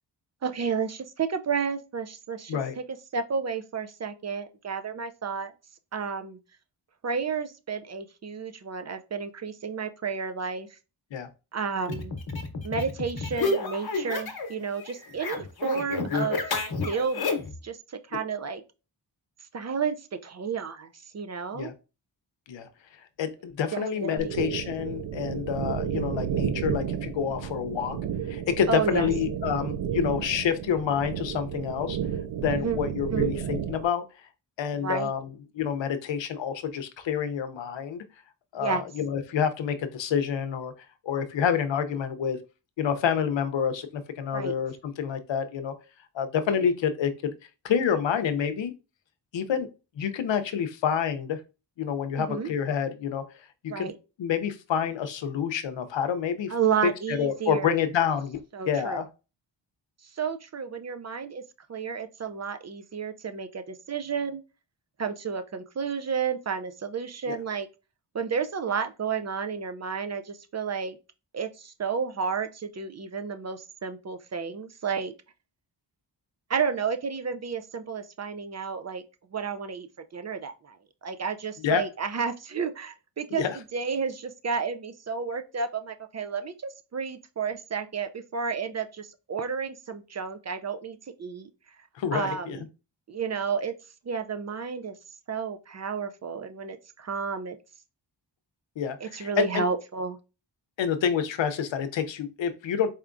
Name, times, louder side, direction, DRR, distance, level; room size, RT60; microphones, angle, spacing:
voice 1, 0.4-2.8 3.1-5.5 5.9-6.4 7.0-10.8 11.5-12.2 12.6-16.4 16.9-17.3 17.6-18.6 19.5-20.9 21.1-21.7 23.7-24.3 28.7-29.1 32.5-32.8 33.1-33.3 34.8-35.1 38.6-38.8 44.3-44.5 52.3-52.5 53.7-54.0 56.5-57.8 58.5-59.0 60.1-61.4 61.7-64.4 65.0-67.7 68.1-71.0 71.3-75.1 76.5-79.0 79.3-79.9 80.1-80.8 81.0-91.5 92.1-92.6 93.1-93.7 94.0-95.0 95.3-97.6 99.0-100.2, right 6 dB, 40° right, 0.4 m, -31 dB
sound 1, 11.8-14.5 14.8-17.6, left 3 dB, 55° left, 1.0 m, -30 dB
voice 2, 23.2-28.0 28.3-32.0 32.4-34.0 34.6-38.0 38.5-40.7 41.0-42.4 42.8-45.7 46.1-47.3 47.6-48.7 49.3-49.7 50.0-51.4 51.8-53.2 53.6-53.9 54.2-56.5 56.8-59.1 67.3-67.4 81.6-81.8 83.4-83.6 92.0-92.6 98.8-99.6 100.8-102.9, left 7 dB, 75° left, 0.7 m, -28 dB
sound 2, 24.2-33.8, right 9 dB, 90° right, 0.5 m, -32 dB
4.3 x 3.4 x 2.5 m
wide cardioid pair, 80°, 44 cm